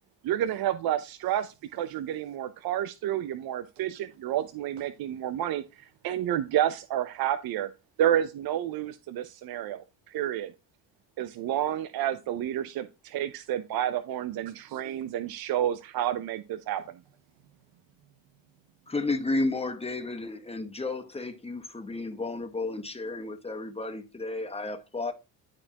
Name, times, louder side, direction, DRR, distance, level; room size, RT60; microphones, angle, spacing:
voice 1, 0.2-5.6 6.0-7.7 8.0-10.5 11.2-17.0, right 11 dB, 60° right, 0.7 m, -30 dB
voice 2, 14.5-15.0 16.8-16.9 17.4-18.9, right 11 dB, 80° right, 1.1 m, -57 dB
voice 3, 18.9-25.1, left 2 dB, 15° left, 1.6 m, -32 dB
11.5 x 4.3 x 2.9 m
supercardioid pair, 75°, 41 cm